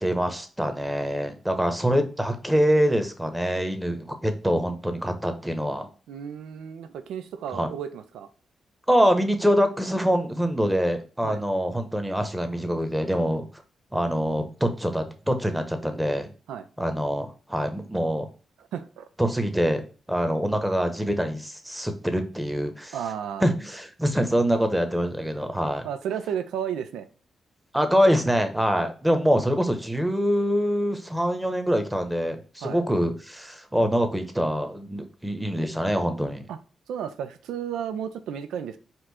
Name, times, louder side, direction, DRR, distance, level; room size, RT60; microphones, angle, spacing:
voice 1, 0.0-5.9 7.5-7.7 8.9-13.5 13.9-16.3 16.8-18.3 19.2-19.8 20.1-23.0 23.4-25.8 27.7-36.4, equal, 10° right, 0.9 m, -25 dB
voice 2, 6.1-8.3 11.2-11.4 16.5-16.7 18.6-19.1 22.9-23.4 25.8-27.1 32.6-32.8 36.5-36.6 36.9-38.8, right 8 dB, 85° right, 0.4 m, -33 dB
4.4 x 2.5 x 4.1 m
supercardioid pair, 55°, 0 cm